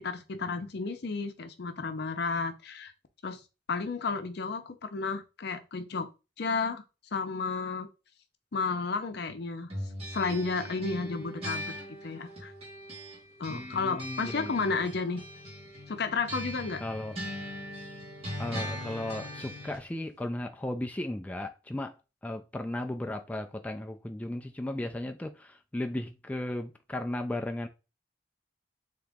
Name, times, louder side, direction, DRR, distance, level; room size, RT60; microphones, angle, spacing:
voice 1, 0.0-2.9 3.2-3.4 3.7-6.1 6.4-6.8 7.1-7.9 8.5-9.7 10.1-11.6 12.0-12.5 13.4-15.2 15.9-16.8, left 4 dB, 65° left, 0.6 m, -32 dB
sound 1, 9.7-13.2 13.4-19.8, left 1 dB, 35° right, 1.9 m, -40 dB
voice 2, 13.5-14.7 16.8-17.2 18.4-22.0 22.2-27.7, left 1 dB, 10° left, 0.3 m, -35 dB
3.7 x 2.9 x 3.5 m
head